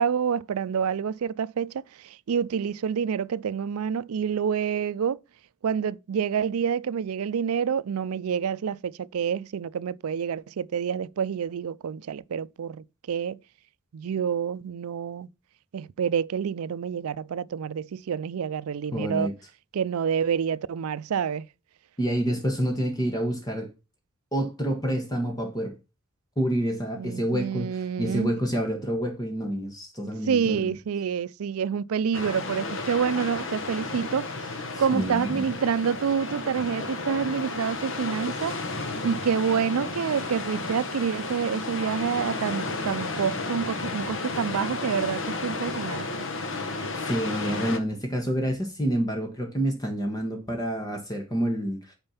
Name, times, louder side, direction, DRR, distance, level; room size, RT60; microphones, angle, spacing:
voice 1, 0.0-5.2 5.6-13.4 13.9-15.3 15.7-19.3 19.7-21.5 26.9-28.3 30.3-34.3 34.8-38.6 39.0-46.1, right 7 dB, 90° right, 0.4 m, -28 dB
voice 2, 18.9-19.3 22.0-23.7 24.3-25.7 26.4-30.7 34.7-35.5 47.0-51.9, equal, 20° left, 1.3 m, -28 dB
sound 1, 32.1-47.8, left 3 dB, 60° left, 1.1 m, -33 dB
8.8 x 4.4 x 5.7 m
head